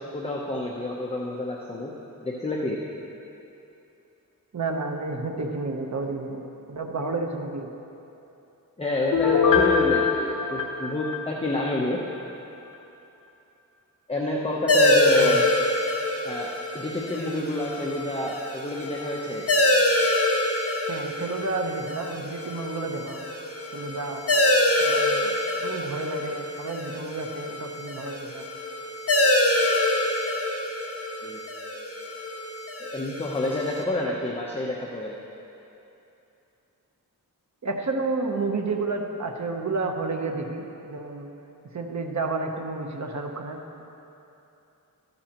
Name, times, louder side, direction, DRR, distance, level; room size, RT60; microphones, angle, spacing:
voice 1, 0.1-1.9 2.2-2.8 8.8-12.0 14.1-15.4 16.2-19.5 31.2-31.4 32.8-35.1, left 2 dB, 15° left, -3 dB, 0.9 m, -28 dB
voice 2, 4.5-6.4 6.7-7.7 15.1-15.4 20.9-23.3 23.7-24.2 24.8-28.5 37.6-41.3 41.7-43.6, right 3 dB, 50° right, 3 dB, 1.1 m, -31 dB
Piano, 9.1-11.8 12.2-12.3, left 6 dB, 65° left, 1.1 m, -23 dB
sound 1, 14.7-33.8, left 1 dB, 40° left, 1.3 m, -25 dB
14.0 x 13.0 x 3.0 m, 2.9 s
wide cardioid pair, 100°, 35 cm